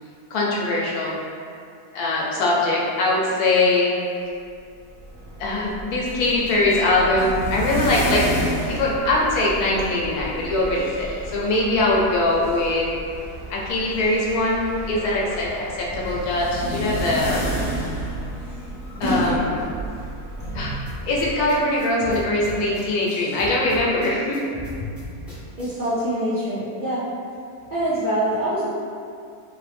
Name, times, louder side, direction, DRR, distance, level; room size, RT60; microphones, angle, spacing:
voice 1, 0.3-1.2 1.9-3.9 5.4-8.3 8.7-12.9 13.5-15.5 15.8-17.5 19.0-19.5 20.5-20.7 21.1-24.4, left 2 dB, 75° left, -4 dB, 1.1 m, -22 dB
sound 1, 4.8-21.9, equal, 50° left, 0.8 m, -31 dB
sound 2, 20.9-25.9, left 2 dB, ahead, 0.3 m, -38 dB
voice 2, 25.6-27.0 27.7-28.6, right 1 dB, 60° right, -13 dB, 0.5 m, -24 dB
3.2 x 2.1 x 3.2 m, 2.4 s
omnidirectional pair, 1.7 m